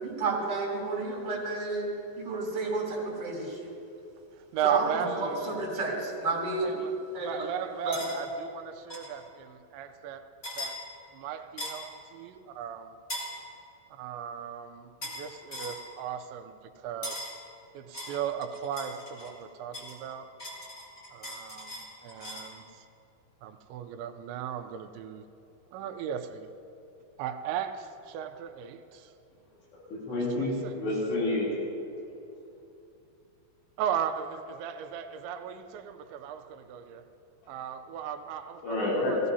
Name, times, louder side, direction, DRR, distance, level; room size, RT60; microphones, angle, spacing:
voice 1, 0.0-1.9 2.2-3.7 4.6-6.7 7.1-7.5 7.8-8.0, right 3 dB, 25° right, -5 dB, 3.4 m, -31 dB
voice 2, 4.4-5.4 6.6-10.3 10.6-10.8 11.1-13.0 13.9-17.2 17.7-20.3 21.1-22.9 23.4-25.2 25.7-26.5 27.2-29.1 30.1-30.8 33.8-37.0 37.5-39.2, right 9 dB, 85° right, 8 dB, 3.0 m, -36 dB
sound 1, 7.9-8.2 8.9-9.1 10.4-10.8 11.6-11.9 13.1-13.3 15.0-15.2 15.5-15.8 17.0-17.4 17.9-19.3 19.7-22.5, left 1 dB, 30° left, 1.2 m, -39 dB
voice 3, 29.7-31.5 37.4-37.5 38.6-39.2, left 2 dB, 80° left, -7 dB, 5.4 m, -29 dB
19.0 x 15.5 x 2.8 m, 2.7 s
omnidirectional pair, 5.1 m